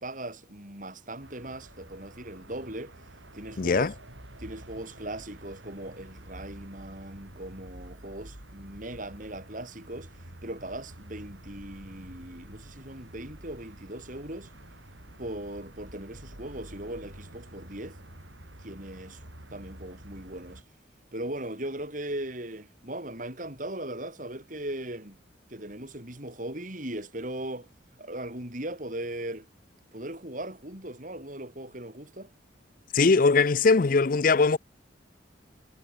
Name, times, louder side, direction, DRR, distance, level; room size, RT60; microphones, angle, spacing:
voice 1, 0.0-2.9 3.3-3.9 4.4-10.1 10.4-14.5 15.2-18.0 18.6-19.2 19.5-20.6 21.1-25.2 25.5-27.7 28.0-29.5 29.9-32.3, right 1 dB, 45° right, 6.9 m, -38 dB
sound 1, 1.2-20.6, right 1 dB, 85° right, 7.4 m, -48 dB
voice 2, 3.6-3.9 32.9-34.6, left 4 dB, 45° left, 0.5 m, -21 dB
head